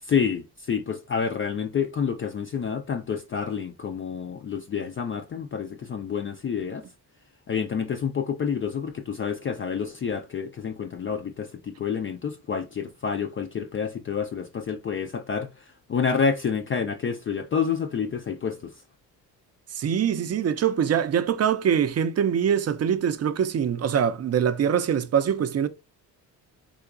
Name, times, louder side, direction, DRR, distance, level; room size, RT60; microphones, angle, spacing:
voice 1, 0.0-6.9 7.5-18.7, left 6 dB, 30° left, 0.4 m, -28 dB
voice 2, 19.7-25.7, right 8 dB, 35° right, 0.5 m, -23 dB
3.6 x 2.8 x 2.4 m
supercardioid pair, 55°, 46 cm